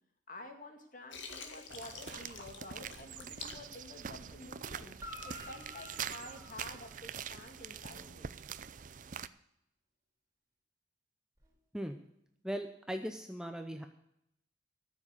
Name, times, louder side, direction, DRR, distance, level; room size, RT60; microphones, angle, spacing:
voice 1, 0.3-5.0 5.2-8.3, left 1 dB, 45° left, 5 dB, 2.0 m, -50 dB
Water, 1.1-4.6, left 5 dB, 75° left, 2.0 m, -48 dB
sound 1, 1.7-9.3, right 8 dB, 40° right, 0.5 m, -45 dB
Guitar, 5.0-7.5 11.4-11.5, left 1 dB, 20° right, 3.9 m, -50 dB
voice 2, 12.4-13.9, equal, 5° right, 6 dB, 0.7 m, -39 dB
14.0 x 7.5 x 8.1 m, 0.77 s
head